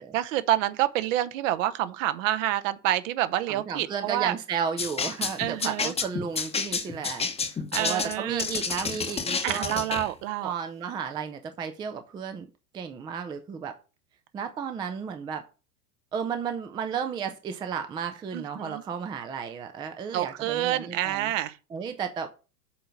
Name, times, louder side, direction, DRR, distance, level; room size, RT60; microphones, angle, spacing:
voice 1, 0.0-4.3 5.4-5.9 7.7-8.5 9.4-10.5 18.3-18.8 20.1-21.5, right 13 dB, 50° right, 0.9 m, -28 dB
voice 2, 3.5-9.8 10.4-12.5 12.7-13.7 14.3-15.4 16.1-21.3 21.7-22.3, right 7 dB, 10° right, 0.4 m, -33 dB
sound 1, 4.8-10.1, left 5 dB, 15° left, 0.9 m, -30 dB
7.0 x 3.8 x 6.1 m
hypercardioid pair, 100°, 48 cm